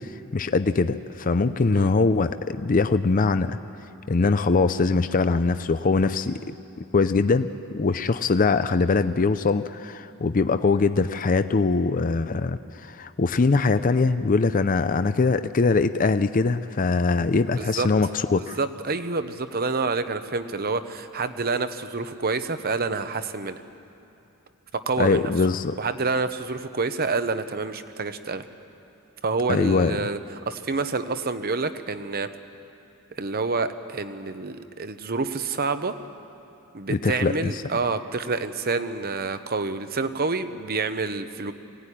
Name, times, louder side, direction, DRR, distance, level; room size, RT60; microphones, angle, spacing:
voice 1, 0.0-3.6 4.1-6.5 6.9-7.5 7.7-18.6 25.0-25.8 29.5-29.9 36.9-37.6, left 4 dB, 40° left, 11 dB, 0.5 m, -22 dB
voice 2, 17.6-17.9 18.6-23.6 24.7-25.3 25.8-28.4 29.2-30.2 30.5-32.3 33.2-36.0 36.7-41.5, right 4 dB, 45° right, 10 dB, 0.9 m, -28 dB
23.0 x 17.0 x 9.9 m, 2.8 s
head